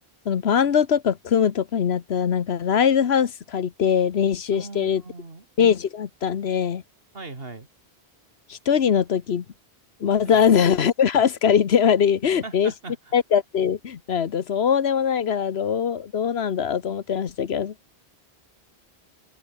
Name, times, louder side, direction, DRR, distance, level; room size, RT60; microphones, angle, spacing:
voice 1, 0.2-5.0 5.6-6.8 8.5-9.4 10.0-12.7 13.1-17.7, left 7 dB, 80° left, 1.2 m, -21 dB
voice 2, 4.5-5.4 7.1-7.7 10.2-10.5 12.4-13.1, right 3 dB, 70° right, 3.0 m, -39 dB
omnidirectional pair, 1.0 m